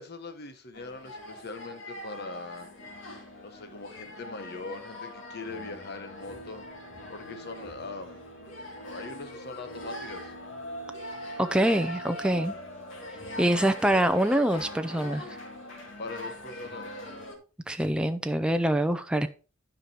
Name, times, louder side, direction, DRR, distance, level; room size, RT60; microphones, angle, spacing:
voice 1, 0.0-2.7 3.4-6.7 7.1-8.3 8.8-10.3 16.0-16.9, left 3 dB, 55° left, 1.3 m, -41 dB
sound 1, 0.7-17.4, equal, 80° left, 2.7 m, -41 dB
voice 2, 11.4-12.5 13.4-15.4 17.7-19.3, right 1 dB, 5° right, 0.5 m, -25 dB
12.0 x 5.1 x 4.3 m
head